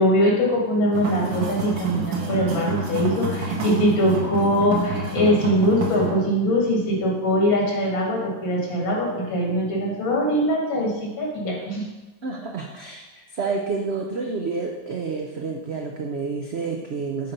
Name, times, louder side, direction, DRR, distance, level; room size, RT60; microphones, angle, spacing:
voice 1, 0.0-11.8, equal, 80° left, -2 dB, 2.6 m, -22 dB
sound 1, 0.9-6.1, right 2 dB, 65° right, 1.8 m, -28 dB
voice 2, 12.2-17.3, right 4 dB, 90° right, 1 dB, 0.5 m, -29 dB
8.1 x 4.3 x 5.3 m, 1.1 s
omnidirectional pair, 2.1 m